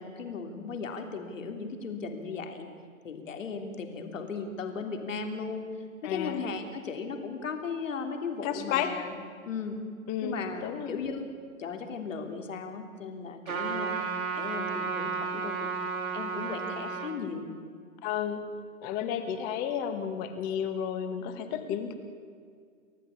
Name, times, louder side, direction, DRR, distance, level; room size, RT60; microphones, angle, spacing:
voice 1, 0.0-2.7 3.0-5.7 6.0-9.1 9.4-9.8 10.2-11.3 11.6-14.0 14.3-15.7 16.1-17.5, left 5 dB, 65° left, 5 dB, 3.3 m, -36 dB
voice 2, 6.0-6.4 8.4-9.0 10.1-11.0 18.0-18.4 18.8-21.9, left 8 dB, 20° left, 9 dB, 1.8 m, -32 dB
Trumpet, 13.5-17.2, right 5 dB, 75° right, 3.9 m, -33 dB
30.0 x 14.0 x 8.6 m, 2.1 s
hypercardioid pair, 150°, 42 cm